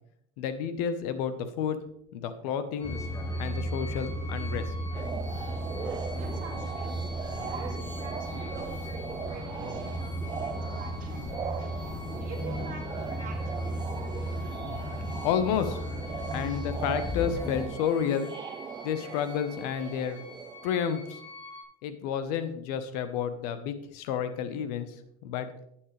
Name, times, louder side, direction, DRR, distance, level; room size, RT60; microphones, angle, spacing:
voice 1, 0.4-1.8 2.1-2.9 3.4-4.6 15.2-15.8 16.3-18.3 18.8-20.2 20.6-21.2 21.8-24.9 25.2-25.5, left 8 dB, 85° left, 10 dB, 1.1 m, -30 dB
sound 1, 2.8-21.6, left 3 dB, 30° left, 4.8 m, -47 dB
sound 2, 2.8-17.7, equal, 15° left, 1.2 m, -35 dB
sound 3, 4.9-21.1, right 7 dB, 20° right, 0.5 m, -40 dB
voice 2, 6.2-14.2, right 6 dB, 40° right, 0 dB, 2.5 m, -46 dB
12.0 x 8.6 x 3.3 m, 0.74 s
cardioid pair, 130°, 20 cm